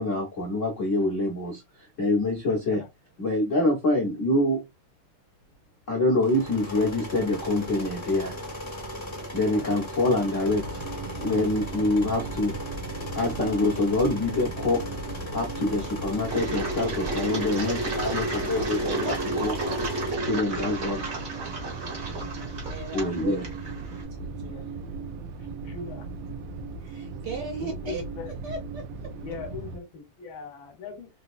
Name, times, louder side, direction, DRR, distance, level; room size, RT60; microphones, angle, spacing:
voice 1, 0.0-1.6 2.0-2.8 3.2-4.6 5.9-8.3 9.3-10.8 11.2-12.5 13.1-14.9 15.3-19.8 20.2-21.1 22.9-23.4, left 2 dB, 55° left, 0.8 m, -25 dB
voice 2, 2.5-2.9 9.5-9.8 11.7-12.0 24.5-24.7 25.4-26.1 27.6-28.3 29.2-31.1, left 4 dB, 70° left, 1.6 m, -40 dB
sound 1, 6.2-20.1, equal, 25° left, 0.5 m, -37 dB
sound 2, 10.4-29.8, right 3 dB, 80° right, 1.4 m, -37 dB
Engine, 16.3-24.0, right 2 dB, 40° right, 1.1 m, -32 dB
voice 3, 22.0-23.4 24.1-24.7 26.8-29.1, right 4 dB, 65° right, 1.2 m, -39 dB
3.9 x 2.7 x 2.4 m
omnidirectional pair, 2.4 m